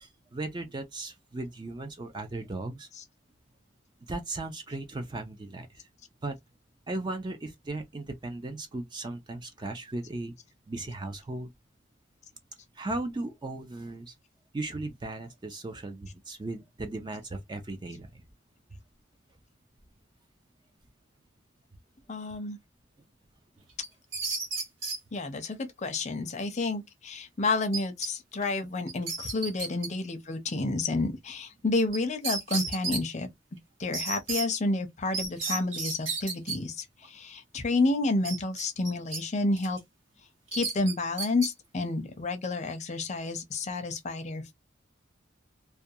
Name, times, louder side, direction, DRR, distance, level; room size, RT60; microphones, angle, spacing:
voice 1, 0.0-2.9 4.0-5.8 6.2-6.4 6.9-10.3 10.7-11.5 12.8-14.1 14.5-18.2, right 2 dB, 20° right, 0.4 m, -37 dB
voice 2, 22.1-22.6 25.1-33.3 33.8-39.8 40.5-44.5, left 2 dB, 35° left, 0.5 m, -30 dB
sound 1, 23.8-25.0 27.7-28.1 28.4-28.5 28.9-29.9 31.9-32.0 32.2-33.0 33.9-34.5 35.1-36.6 38.2-39.2 39.6-39.8 40.5-41.5, right 3 dB, 75° right, 1.2 m, -33 dB
2.3 x 2.2 x 2.7 m
head